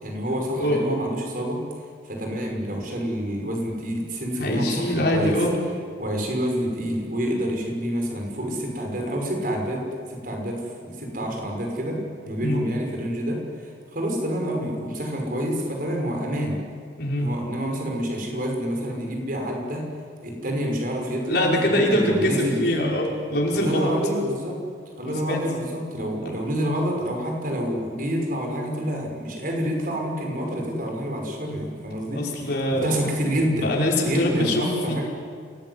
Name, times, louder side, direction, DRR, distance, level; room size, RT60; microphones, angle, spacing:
voice 1, 0.0-1.6 2.1-5.4 6.0-16.6 17.2-19.8 20.2-22.8 23.5-24.6 25.0-33.8 34.1-35.0, equal, 50° right, 1 dB, 6.0 m, -28 dB
voice 2, 4.4-5.5 12.4-12.6 17.0-17.3 21.3-23.9 25.1-25.4 26.3-26.4 32.2-32.9 33.6-35.0, left 1 dB, 60° left, -2 dB, 5.3 m, -23 dB
27.0 x 18.5 x 9.8 m, 2.1 s
head